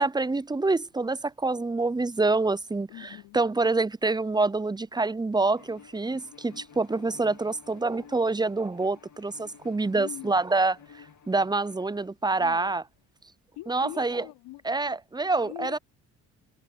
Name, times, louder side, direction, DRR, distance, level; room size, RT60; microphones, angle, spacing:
voice 1, 0.0-12.8 13.7-14.2 14.6-15.8, right 3 dB, 10° right, 0.6 m, -26 dB
voice 2, 2.9-3.4 9.9-10.4 12.4-12.8 13.6-14.6 15.4-15.8, left 18 dB, 80° left, 4.0 m, -42 dB
Bowed string instrument, 5.5-12.1, left 7 dB, 45° left, 2.6 m, -52 dB
hypercardioid pair, 55°, 41 cm